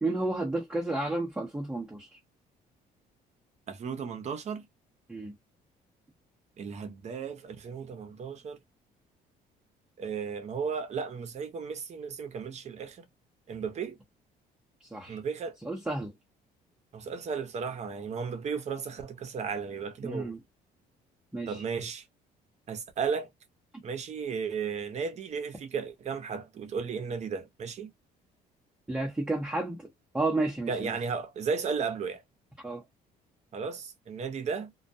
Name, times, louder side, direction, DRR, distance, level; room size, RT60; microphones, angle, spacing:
voice 1, 0.0-2.1 5.1-5.3 14.9-15.2 15.6-16.1 20.0-20.4 21.3-21.6 28.9-29.8 30.1-31.0 32.6-32.8, right 2 dB, 5° right, 0.7 m, -31 dB
voice 2, 3.7-4.7 6.6-8.6 10.0-13.0 13.5-14.0 15.1-15.6 16.9-20.3 21.5-22.0 22.7-23.3 23.8-27.9 30.7-32.2 33.5-34.7, right 6 dB, 40° right, 0.7 m, -34 dB
2.2 x 2.1 x 2.6 m
cardioid pair, 110°, 17 cm